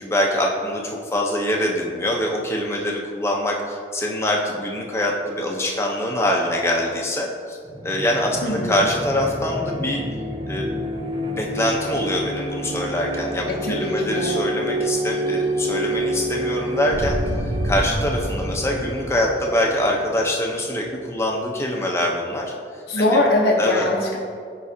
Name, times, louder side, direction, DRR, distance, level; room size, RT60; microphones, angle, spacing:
voice 1, 0.0-7.6 7.8-10.0 10.5-10.7 11.3-22.5 23.1-23.2 23.6-23.9, left 1 dB, 15° left, -1 dB, 0.9 m, -24 dB
sound 1, 7.7-21.2, right 1 dB, 25° right, 0.6 m, -28 dB
voice 2, 8.4-8.9 13.5-14.4 22.9-24.2, left 2 dB, 75° left, -4 dB, 1.0 m, -21 dB
14.5 x 4.8 x 2.8 m, 2.2 s
head